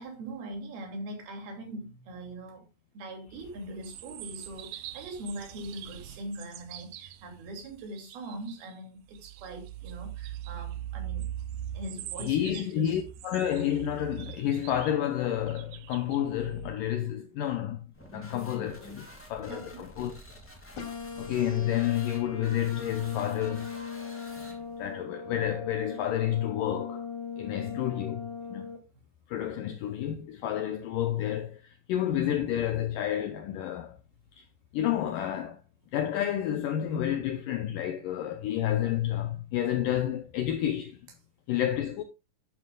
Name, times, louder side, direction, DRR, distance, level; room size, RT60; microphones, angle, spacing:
voice 1, 0.0-2.7 2.9-11.3 11.7-13.0 19.5-19.8, right 1 dB, 65° right, 4.3 m, -41 dB
sound 1, 3.3-8.7 9.1-16.8, right 12 dB, 80° right, 2.2 m, -42 dB
voice 2, 12.2-17.9 18.1-20.1 21.2-23.9 24.4-27.1 27.4-28.7 29.3-34.0 34.4-34.5 34.7-35.6 35.9-41.0 41.5-42.0, left 11 dB, 80° left, 1.9 m, -30 dB
sound 2, 17.9-24.9, left 1 dB, 5° left, 1.4 m, -48 dB
sound 3, 20.8-28.8, left 6 dB, 45° left, 3.9 m, -39 dB
12.0 x 9.7 x 2.4 m
omnidirectional pair, 4.9 m